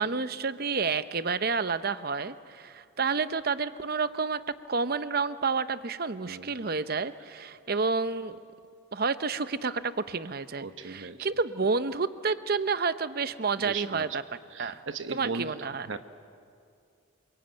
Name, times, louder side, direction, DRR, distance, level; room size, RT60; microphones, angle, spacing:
voice 1, 0.0-8.4 8.9-14.2 14.6-14.8 15.1-15.9, right 4 dB, 45° right, 13 dB, 0.8 m, -30 dB
voice 2, 10.6-11.2 13.6-14.1 14.5-15.5 15.9-16.0, right 4 dB, 65° right, 9 dB, 1.1 m, -36 dB
27.5 x 22.5 x 9.1 m, 2.3 s
head